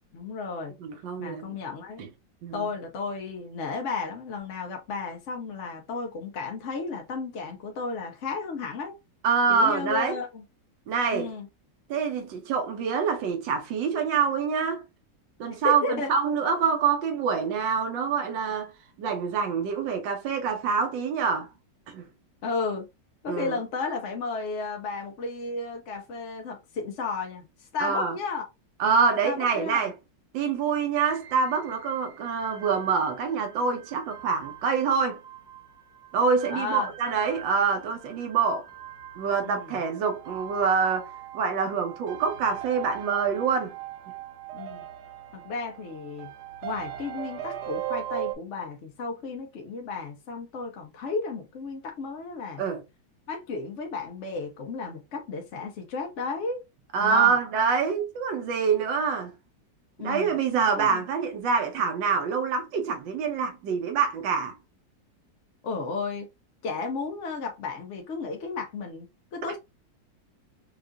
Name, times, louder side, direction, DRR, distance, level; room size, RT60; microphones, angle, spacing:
voice 1, 0.1-0.7 1.2-2.0 2.5-8.9 9.5-10.4 11.1-11.5 15.6-16.1 22.4-22.9 23.2-27.5 27.7-28.5 29.2-29.9 36.5-36.9 39.4-39.8 44.5-44.8 45.3-46.3 46.6-52.6 53.3-56.6 57.0-57.4 60.0-60.4 60.8-61.0 65.6-66.3 66.6-69.6, left 4 dB, 60° left, 0.7 m, -33 dB
voice 2, 0.8-1.6 2.4-2.7 9.2-10.2 10.9-11.3 11.9-14.8 15.4-18.7 19.0-21.5 21.9-22.0 23.3-23.6 27.8-28.2 28.8-29.9 30.3-35.2 36.1-38.7 39.2-43.7 52.6-52.8 56.9-59.3 60.0-64.5, right 6 dB, 85° right, 1.5 m, -26 dB
sound 1, 31.0-48.3, right 12 dB, 70° right, 1.2 m, -40 dB
4.6 x 2.4 x 2.5 m
omnidirectional pair, 2.0 m